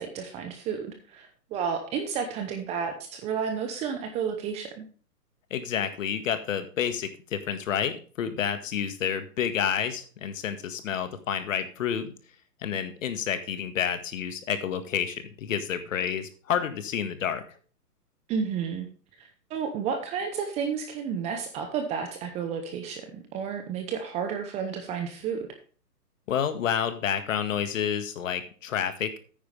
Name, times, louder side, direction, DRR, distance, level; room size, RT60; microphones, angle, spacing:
voice 1, 0.0-4.8 18.3-18.9 19.2-25.5, right 6 dB, 15° right, 6 dB, 0.8 m, -31 dB
voice 2, 5.5-12.1 12.6-17.4 26.3-29.2, left 8 dB, 50° left, 10 dB, 1.8 m, -29 dB
9.5 x 9.5 x 3.4 m, 0.40 s
hypercardioid pair, 140°, 48 cm